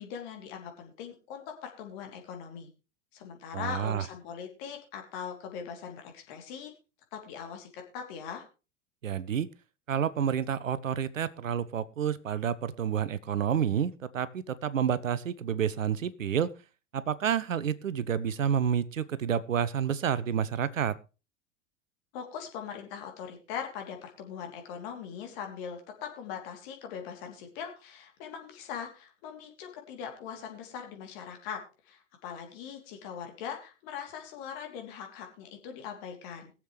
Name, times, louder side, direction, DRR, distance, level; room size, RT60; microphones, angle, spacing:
voice 1, 0.0-2.7 3.1-6.7 7.1-8.5 22.1-36.5, left 7 dB, 50° left, 4 dB, 3.0 m, -41 dB
voice 2, 3.5-4.0 9.0-9.5 9.9-16.5 16.9-21.0, right 8 dB, 80° right, 16 dB, 0.8 m, -29 dB
22.0 x 7.4 x 3.2 m, 0.31 s
figure-of-eight pair, 90°, 38 cm